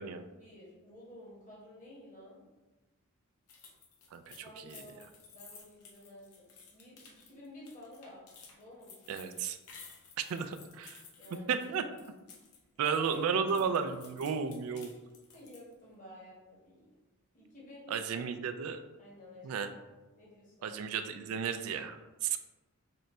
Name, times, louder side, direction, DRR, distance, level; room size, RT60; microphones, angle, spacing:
voice 1, 0.2-2.4 4.4-5.0 5.3-8.3 8.5-9.2 11.2-11.6 12.8-13.6 15.3-16.9 17.3-18.2 19.0-19.8 20.2-20.9 22.3-22.4, left 1 dB, 35° left, -6 dB, 0.9 m, -52 dB
sound 1, 3.5-12.6 12.9-15.7, left 5 dB, 80° left, 0.7 m, -55 dB
voice 2, 4.1-4.8 9.1-9.6 10.2-11.0 11.5-11.9 12.8-14.9 17.9-18.8 19.4-19.7 20.6-22.4, right 6 dB, 65° right, 10 dB, 0.3 m, -33 dB
3.7 x 2.2 x 4.1 m, 1.1 s
head